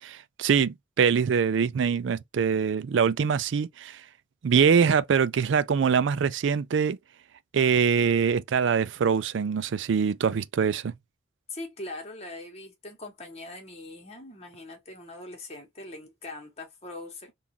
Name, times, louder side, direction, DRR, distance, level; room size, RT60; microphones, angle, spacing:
voice 1, 0.0-4.0 4.4-7.0 7.5-10.9, right 6 dB, 80° right, 0.4 m, -24 dB
voice 2, 11.5-17.3, left 2 dB, 35° left, 1.3 m, -41 dB
3.7 x 2.5 x 2.7 m
head